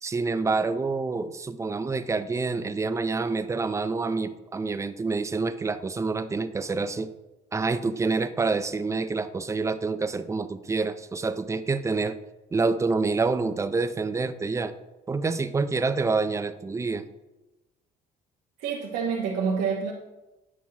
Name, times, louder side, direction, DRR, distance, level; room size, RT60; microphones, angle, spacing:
voice 1, 0.0-7.1 7.5-12.2 12.5-14.7 15.1-17.1, right 4 dB, 15° right, 11 dB, 0.4 m, -27 dB
voice 2, 18.6-19.9, right 6 dB, 85° right, -3 dB, 1.0 m, -27 dB
9.1 x 6.1 x 2.8 m, 1.0 s
cardioid pair, 110°, 17 cm